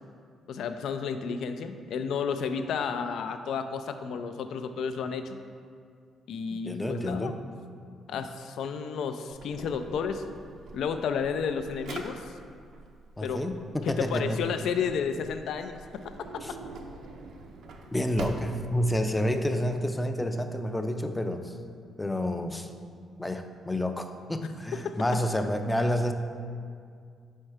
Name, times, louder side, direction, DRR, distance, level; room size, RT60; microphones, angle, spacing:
voice 1, 0.5-5.3 6.3-7.3 8.1-10.2 10.7-12.3 13.2-13.4 13.8-15.8 24.8-25.0, left 6 dB, 75° left, 8 dB, 0.4 m, -31 dB
voice 2, 6.5-7.3 13.2-13.6 13.9-14.4 16.4-16.5 17.9-21.5 22.0-22.7 23.2-26.1, left 1 dB, 10° left, 7 dB, 0.4 m, -29 dB
Drawer open or close, 9.3-19.2, right 3 dB, 70° right, 0.6 m, -44 dB
5.4 x 4.4 x 4.9 m, 2.2 s
cardioid pair, 90°, 0 cm